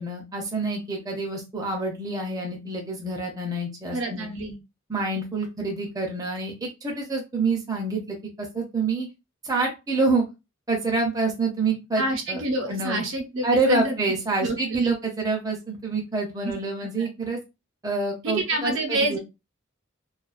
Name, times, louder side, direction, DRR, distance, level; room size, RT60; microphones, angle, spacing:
voice 1, 0.0-4.3 4.9-9.1 9.4-10.2 10.7-12.4 12.7-13.0 13.4-17.4 17.8-19.2, right 3 dB, 20° right, -1 dB, 0.6 m, -27 dB
voice 2, 3.9-4.6 12.0-14.0 14.4-14.9 16.4-16.5 16.8-17.1 18.2-19.2, right 2 dB, 65° right, 3 dB, 0.7 m, -27 dB
2.3 x 2.2 x 2.4 m, 0.25 s
head